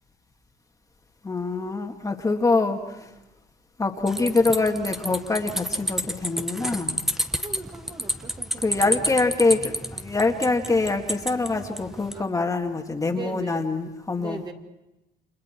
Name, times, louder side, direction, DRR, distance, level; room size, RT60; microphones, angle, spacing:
voice 1, 1.2-3.1 3.8-7.0 8.6-14.4, left 3 dB, 20° left, 2 dB, 2.0 m, -24 dB
sound 1, 4.1-12.2, equal, ahead, 1.1 m, -30 dB
voice 2, 7.4-9.3 12.1-12.3 13.0-13.7 14.1-14.5, right 3 dB, 25° right, 3 dB, 2.5 m, -39 dB
30.0 x 26.5 x 4.5 m, 0.94 s
cardioid pair, 110°, 17 cm